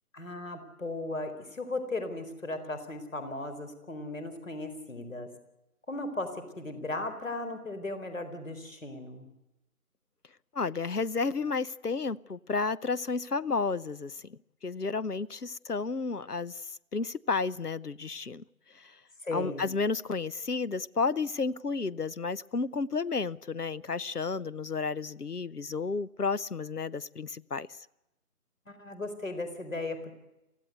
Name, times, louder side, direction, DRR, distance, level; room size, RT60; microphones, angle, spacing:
voice 1, 0.1-5.3 5.9-9.3 19.2-19.7 28.7-30.1, left 2 dB, 55° left, 9 dB, 4.4 m, -36 dB
voice 2, 10.5-18.4 18.7-19.0 19.3-27.8, left 4 dB, 85° left, 17 dB, 0.9 m, -32 dB
25.0 x 16.0 x 8.1 m, 0.95 s
figure-of-eight pair, 160°, 46 cm